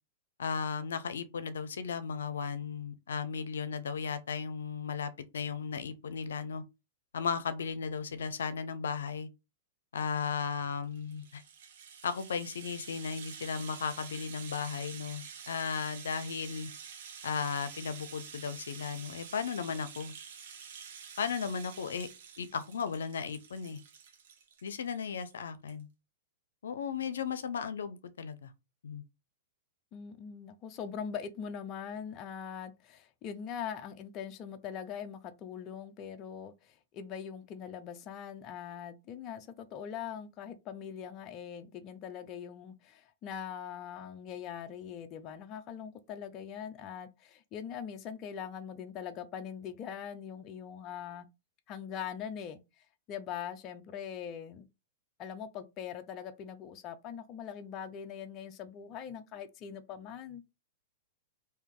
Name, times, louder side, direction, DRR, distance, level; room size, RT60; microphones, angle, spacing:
voice 1, 0.4-6.6 7.1-9.3 9.9-11.4 12.0-16.7 17.2-20.1 21.2-22.1 22.4-23.8 24.6-25.9 26.6-28.5 28.8-29.0, left 6 dB, 90° left, 0.5 m, -35 dB
Rattle (instrument), 10.8-25.0 25.3-25.4 25.7-25.8, right 7 dB, 65° right, 1.1 m, -48 dB
voice 2, 29.9-51.3 51.7-54.7 55.2-60.4, left 8 dB, 30° left, 0.5 m, -42 dB
3.5 x 2.7 x 3.6 m
hypercardioid pair, 135°, 0 cm